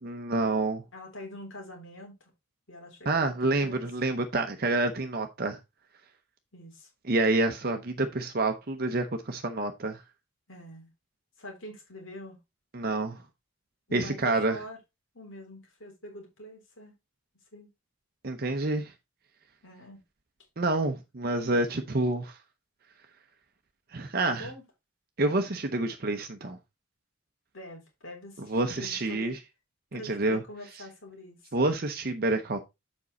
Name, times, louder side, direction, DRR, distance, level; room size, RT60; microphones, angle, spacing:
voice 1, 0.0-0.8 3.0-5.6 7.1-10.0 12.7-13.2 13.9-14.6 18.2-18.9 20.6-22.4 23.9-24.5 25.2-26.6 28.4-29.4 29.9-30.4 31.5-32.6, right 2 dB, 45° right, 0.7 m, -28 dB
voice 2, 0.9-2.3 2.7-3.8 6.5-6.9 10.5-10.9 11.4-12.4 13.9-14.8 15.1-16.9 17.5-17.7 19.6-20.0 24.2-24.6 27.5-29.3 29.9-31.4, left 1 dB, 70° left, 3.3 m, -45 dB
7.4 x 5.2 x 4.0 m
head